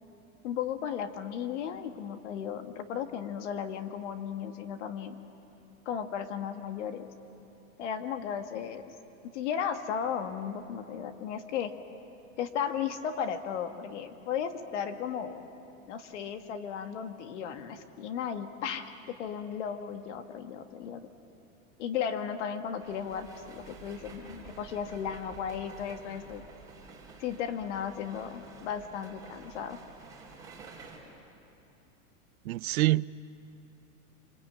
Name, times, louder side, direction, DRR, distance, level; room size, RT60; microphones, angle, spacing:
voice 1, 0.4-5.2 5.8-7.1 7.8-8.9 9.3-11.7 12.4-15.4 15.9-21.1 21.8-26.4 27.2-29.8, left 8 dB, 55° left, 7 dB, 1.8 m, -35 dB
sound 1, 22.8-31.0, right 4 dB, 10° right, 3.7 m, -50 dB
voice 2, 32.4-33.1, right 17 dB, 80° right, 19 dB, 0.7 m, -25 dB
26.5 x 26.0 x 8.8 m, 2.9 s
supercardioid pair, 170°, 42 cm